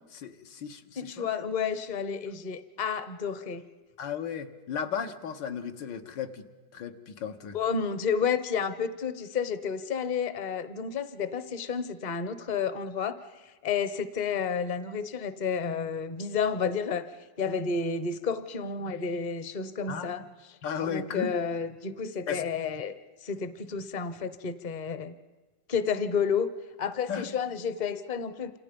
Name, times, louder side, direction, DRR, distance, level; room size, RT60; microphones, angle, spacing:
voice 1, 0.1-1.3 4.0-6.4 6.7-7.6 19.9-20.1 20.6-21.3 22.3-22.4 27.1-27.3, left 7 dB, 80° left, 6 dB, 1.9 m, -35 dB
voice 2, 1.0-3.6 7.5-22.9 23.2-25.1 25.7-26.5 26.8-28.6, left 6 dB, 35° left, 12 dB, 0.8 m, -31 dB
28.5 x 27.5 x 5.3 m, 1.2 s
omnidirectional pair, 1.9 m